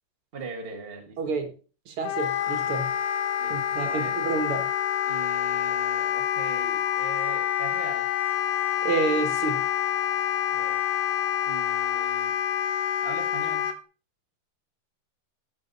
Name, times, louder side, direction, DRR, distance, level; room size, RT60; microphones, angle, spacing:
voice 1, 0.3-1.2 3.4-4.2 5.1-8.1 10.5-10.9 11.4-12.4 13.0-13.8, right 4 dB, 30° right, 1.4 m, -41 dB
voice 2, 1.2-1.6 1.9-3.0 3.5-4.7 8.8-9.7, right 4 dB, 80° right, 2.2 m, -29 dB
Wind instrument woodwind instrument, 2.0-13.8, left 10 dB, 65° left, 1.5 m, -27 dB
sound 1, 2.4-12.0, right 1 dB, ahead, 3.8 m, -48 dB
8.8 x 8.0 x 4.0 m
omnidirectional pair, 2.3 m